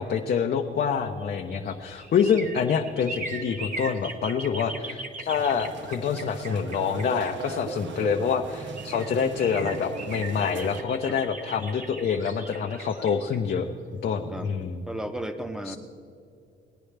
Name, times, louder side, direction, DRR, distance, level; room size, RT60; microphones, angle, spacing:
voice 1, 0.0-13.7 14.0-14.8 15.7-15.8, left 6 dB, 50° left, 2 dB, 0.7 m, -26 dB
sound 1, 1.1-7.9 8.4-8.5 8.7-14.5 14.9-15.0, right 2 dB, 40° right, 1.4 m, -40 dB
sound 2, 5.3-10.8, right 5 dB, 70° right, 0.8 m, -38 dB
voice 2, 14.9-15.8, right 1 dB, 5° right, 8 dB, 0.9 m, -34 dB
18.5 x 10.0 x 3.3 m, 2.5 s
cardioid pair, 90°, 20 cm